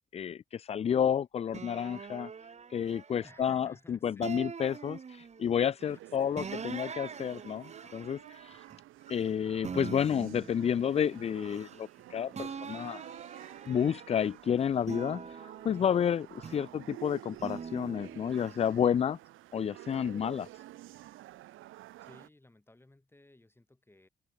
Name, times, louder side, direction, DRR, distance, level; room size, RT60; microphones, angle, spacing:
voice 1, 0.1-2.3 2.7-8.6 9.1-13.0 13.7-19.2 19.5-20.5, left 8 dB, 30° left, 0.4 m, -30 dB
sound 1, 1.5-3.7 4.2-5.6 6.4-9.3 9.6-12.0 12.3-14.3 14.8-16.8 17.4-18.5, right 6 dB, 35° right, 1.1 m, -44 dB
voice 2, 3.2-4.7 5.9-6.8 16.4-16.8 22.0-24.1, left 2 dB, 10° left, 4.1 m, -59 dB
sound 2, 5.8-22.3, right 15 dB, 90° right, 2.0 m, -50 dB
cardioid pair, 90°, 20 cm